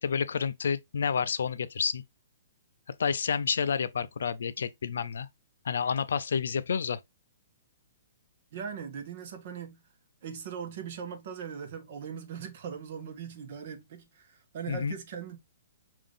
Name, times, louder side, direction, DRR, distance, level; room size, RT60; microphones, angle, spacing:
voice 1, 0.0-2.0 3.0-5.3 5.6-7.0 14.7-14.9, left 6 dB, 80° left, 0.4 m, -29 dB
voice 2, 8.5-9.8 10.2-15.4, right 7 dB, 55° right, 0.9 m, -40 dB
3.7 x 2.6 x 3.4 m
hypercardioid pair, 150°, 0 cm